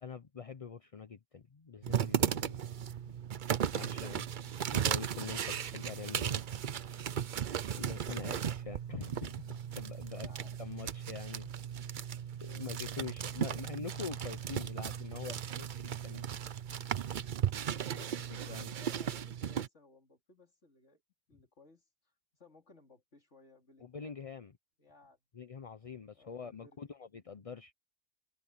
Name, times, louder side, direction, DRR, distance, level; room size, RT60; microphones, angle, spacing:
voice 1, 0.0-2.7 3.7-6.4 7.7-10.3 10.6-11.5 11.9-16.4 17.8-18.7 23.8-24.5 25.3-27.7, left 6 dB, 35° left, 0.6 m, -45 dB
sound 1, 1.8-19.7, right 9 dB, 55° right, 0.6 m, -36 dB
voice 2, 10.1-11.3 12.5-12.9 18.7-21.0 21.3-24.3 24.8-25.2 26.1-26.9 27.2-27.4, left 4 dB, 55° left, 3.4 m, -61 dB
omnidirectional pair, 1.5 m